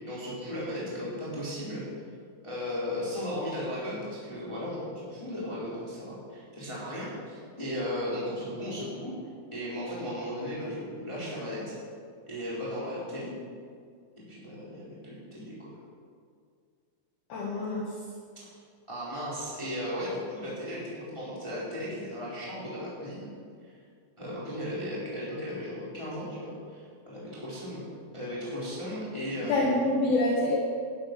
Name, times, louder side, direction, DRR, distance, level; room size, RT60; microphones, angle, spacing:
voice 1, 0.0-1.8 2.4-9.1 9.5-11.7 12.3-13.3 14.2-15.7 18.3-18.5 18.9-23.3 23.6-23.7 24.2-27.8 28.1-29.7, equal, 5° left, -8 dB, 3.2 m, -36 dB
voice 2, 17.3-17.9 29.5-30.6, left 2 dB, 60° left, -5 dB, 3.1 m, -26 dB
12.0 x 11.5 x 6.1 m, 2.1 s
omnidirectional pair, 5.5 m